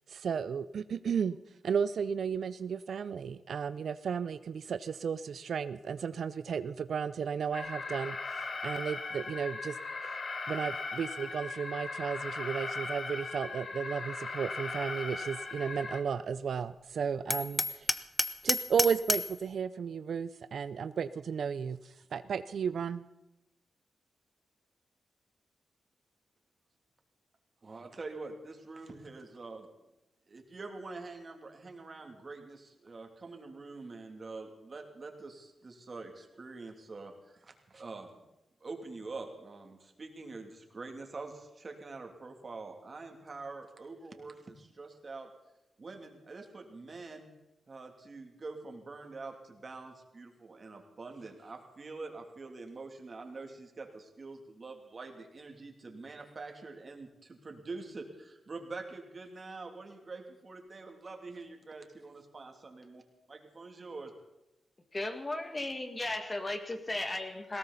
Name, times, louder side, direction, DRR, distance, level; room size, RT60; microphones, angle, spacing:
voice 1, 0.1-1.4 1.6-9.8 10.0-10.2 10.5-17.9 18.4-23.0, right 6 dB, 70° right, 14 dB, 0.4 m, -34 dB
Alarm, 7.5-16.0, left 3 dB, 50° left, 1.5 m, -38 dB
Hammer, 17.3-19.4, left 1 dB, 10° left, 0.8 m, -30 dB
voice 2, 27.6-29.7 30.3-38.2 38.6-45.3 45.8-47.3 47.7-63.0 63.3-64.1, right 3 dB, 40° right, 3 dB, 2.8 m, -45 dB
voice 3, 64.9-67.6, left 2 dB, 25° left, 6 dB, 2.0 m, -35 dB
19.5 x 17.0 x 4.1 m, 0.94 s
cardioid pair, 80°, 0 cm